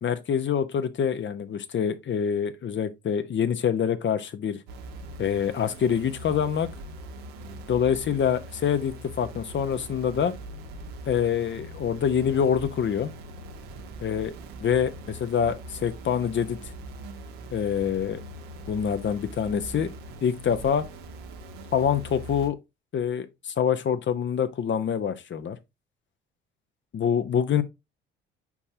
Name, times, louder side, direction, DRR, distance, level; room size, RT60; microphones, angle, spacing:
voice 1, 0.0-4.6 5.2-6.7 7.7-10.3 11.1-13.1 14.0-14.3 14.6-16.6 17.5-18.2 18.7-19.9 20.2-20.9 21.7-22.6 22.9-25.6 26.9-27.6, left 8 dB, 40° left, 1.0 m, -25 dB
sound 1, 4.7-22.5, right 1 dB, 70° right, 1.3 m, -42 dB
7.1 x 5.5 x 2.8 m
hypercardioid pair, 50°, 29 cm